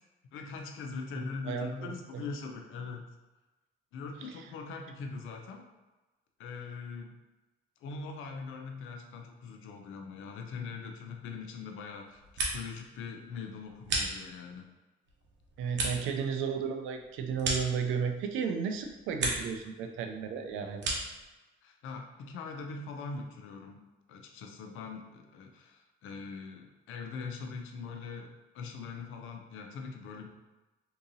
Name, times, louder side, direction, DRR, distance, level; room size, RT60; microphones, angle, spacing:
voice 1, 0.3-3.0 3.9-5.7 6.4-7.1 7.8-14.7 21.6-23.8 24.1-30.3, left 4 dB, 85° left, 3 dB, 0.5 m, -42 dB
voice 2, 1.5-2.2 4.2-4.3 15.6-21.0, right 6 dB, 90° right, 5 dB, 0.4 m, -34 dB
sound 1, 12.0-12.9 13.2-14.6 15.1-18.3 18.7-19.6 19.9-21.2, right 2 dB, 65° right, 0.9 m, -36 dB
3.7 x 2.8 x 2.6 m, 1.1 s
cardioid pair, 90°, 20 cm